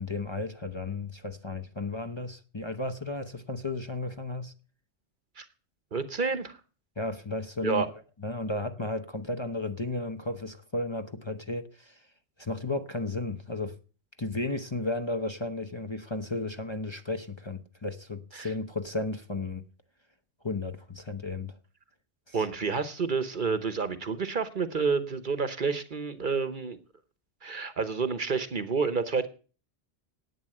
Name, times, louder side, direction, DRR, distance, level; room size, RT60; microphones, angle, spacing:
voice 1, 0.0-4.5 7.0-7.8 8.2-12.0 12.4-13.7 14.2-19.7 20.4-21.5 22.3-22.4, left 2 dB, 25° left, 0.9 m, -34 dB
voice 2, 5.9-6.6 7.6-7.9 18.3-18.5 22.3-26.8 27.4-29.3, right 5 dB, 45° right, 1.0 m, -29 dB
11.0 x 8.9 x 7.7 m
omnidirectional pair, 1.2 m